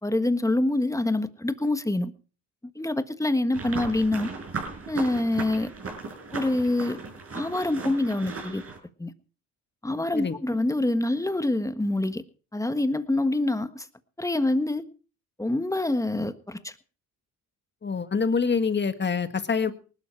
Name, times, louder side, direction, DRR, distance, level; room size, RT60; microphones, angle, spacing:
voice 1, 0.0-2.1 2.7-4.3 4.9-5.7 6.3-7.0 7.3-8.6 9.0-9.1 9.8-12.2 12.5-13.9 14.2-14.8 15.4-16.7, left 2 dB, 10° left, 10 dB, 1.5 m, -26 dB
sound 1, 3.5-8.8, right 4 dB, 45° right, 6.3 m, -36 dB
voice 2, 17.8-19.7, left 5 dB, 35° left, 10 dB, 1.7 m, -25 dB
19.5 x 12.0 x 4.7 m, 0.38 s
cardioid pair, 85°, 33 cm